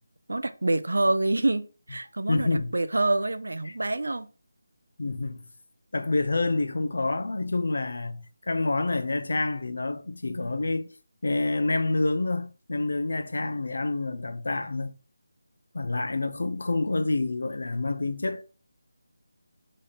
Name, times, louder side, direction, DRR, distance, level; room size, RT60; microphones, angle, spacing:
voice 1, 0.3-4.3, right 2 dB, 85° right, 0.4 m, -26 dB
voice 2, 2.3-2.7 5.0-5.4 5.9-11.0 11.2-14.9 15.7-18.4, left 2 dB, 70° left, 0.4 m, -28 dB
3.1 x 2.5 x 4.2 m
figure-of-eight pair, 170°, 0 cm